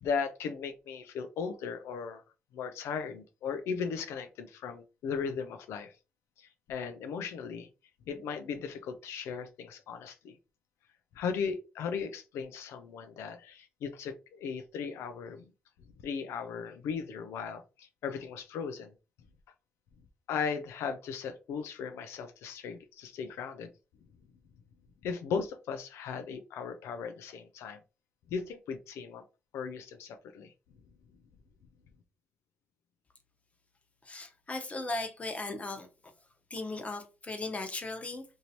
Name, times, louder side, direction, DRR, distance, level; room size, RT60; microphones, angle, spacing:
voice 1, 0.0-2.2 2.5-5.9 6.4-7.7 8.1-10.4 11.1-15.5 16.0-18.9 20.3-23.7 25.0-27.8 28.3-29.2 29.5-30.5, left 6 dB, 85° left, 0.3 m, -37 dB
voice 2, 34.0-35.9 36.5-38.2, left 2 dB, 30° left, 0.9 m, -37 dB
2.9 x 2.6 x 2.8 m
cardioid pair, 65°, 4 cm